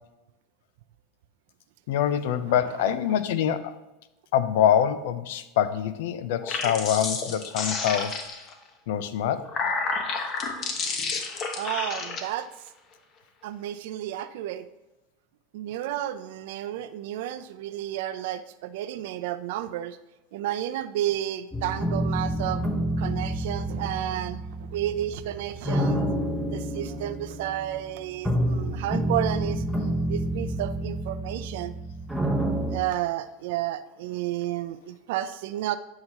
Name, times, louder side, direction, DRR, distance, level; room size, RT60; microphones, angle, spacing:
voice 1, 1.9-3.8 4.3-8.2 8.9-9.5, left 9 dB, 75° left, 13 dB, 0.5 m, -25 dB
voice 2, 2.8-3.2 11.6-12.5 13.4-14.7 15.5-20.0 20.3-22.7 23.0-24.4 24.7-26.0 26.5-29.6 30.1-31.7 32.7-35.8, right 12 dB, 70° right, 12 dB, 0.5 m, -31 dB
sound 1, 6.3-8.5 9.2-12.2, left 4 dB, 40° left, 1.1 m, -30 dB
sound 2, 21.5-32.8, right 1 dB, ahead, 1.0 m, -29 dB
9.4 x 5.7 x 2.9 m, 1.0 s
supercardioid pair, 115°, 0 cm